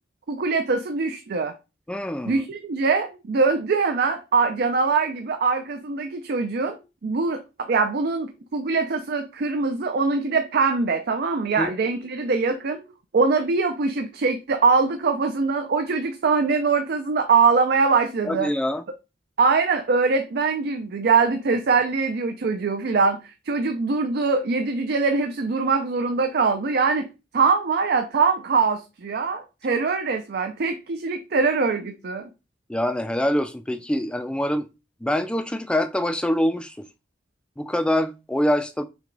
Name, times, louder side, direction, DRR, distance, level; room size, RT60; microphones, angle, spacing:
voice 1, 0.3-1.5 2.2-12.8 13.1-18.5 19.4-27.1 27.3-32.3, right 4 dB, 60° right, 0.5 m, -23 dB
voice 2, 1.9-2.4 11.6-11.7 18.2-18.8 32.7-34.7 35.0-36.8 37.6-38.8, left 1 dB, 5° left, 0.3 m, -24 dB
6.0 x 2.2 x 3.8 m
head